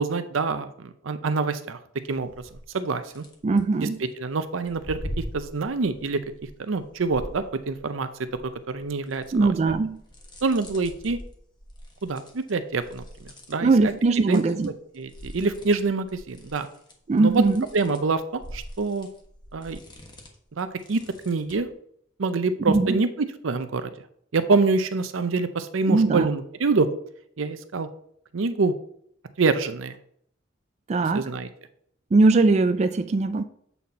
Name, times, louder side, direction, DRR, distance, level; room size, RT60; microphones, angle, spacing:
voice 1, 0.0-1.8 2.1-2.3 2.7-3.2 3.8-3.9 4.2-6.2 6.6-8.1 8.7-9.8 10.4-11.2 12.0-13.7 14.3-14.4 14.9-16.7 17.2-17.4 17.7-19.1 19.5-19.8 20.5-21.0 21.3-21.7 22.2-23.9 24.3-26.9 27.4-27.9 28.3-28.7 29.4-30.0 31.1-31.5, right 4 dB, 80° right, 10 dB, 0.6 m, -26 dB
sound 1, 2.1-2.7 3.0-4.0 4.6-7.9 8.3-14.7 14.9-21.7, equal, 25° left, 1.2 m, -43 dB
voice 2, 3.4-4.0 9.3-10.0 13.6-14.7 17.1-17.6 22.7-23.0 25.9-26.3 30.9-31.2 32.1-33.4, right 3 dB, 35° right, 8 dB, 0.4 m, -20 dB
8.1 x 4.3 x 4.1 m, 0.67 s
head